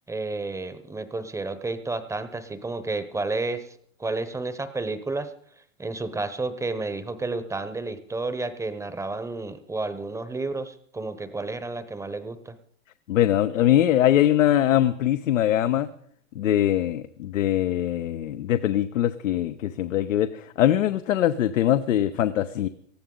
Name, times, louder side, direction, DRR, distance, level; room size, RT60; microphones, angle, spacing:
voice 1, 0.1-3.7 4.0-5.3 5.8-12.6, right 3 dB, 10° right, 12 dB, 0.8 m, -31 dB
voice 2, 13.1-15.9 16.3-22.7, left 12 dB, 80° left, 10 dB, 0.8 m, -22 dB
18.5 x 14.0 x 3.8 m, 0.63 s
hypercardioid pair, 125°, 38 cm